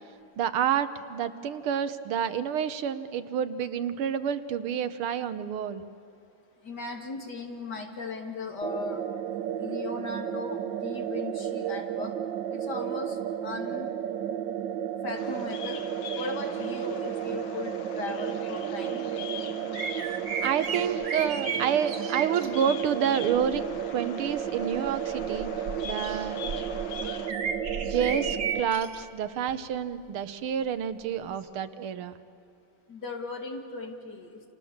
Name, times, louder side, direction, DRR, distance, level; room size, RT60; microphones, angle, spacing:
voice 1, 0.4-5.8 20.1-25.5 25.8-26.4 27.8-32.1, right 8 dB, 85° right, 12 dB, 1.9 m, -29 dB
voice 2, 6.6-9.1 9.6-12.1 12.5-13.9 15.0-15.8 16.1-19.1 32.9-34.4, left 3 dB, 50° left, 2 dB, 3.2 m, -37 dB
sound 1, 8.6-28.6, right 9 dB, 65° right, 1.3 m, -33 dB
Bird vocalization bird call bird song, 15.1-27.3, left 8 dB, 75° left, 1.9 m, -43 dB
sound 2, 19.7-22.5 23.3-23.7 24.3-29.0 29.5-29.6 31.4-31.5, right 5 dB, 45° right, 1.6 m, -35 dB
29.5 x 27.5 x 7.3 m, 2.7 s
omnidirectional pair, 2.3 m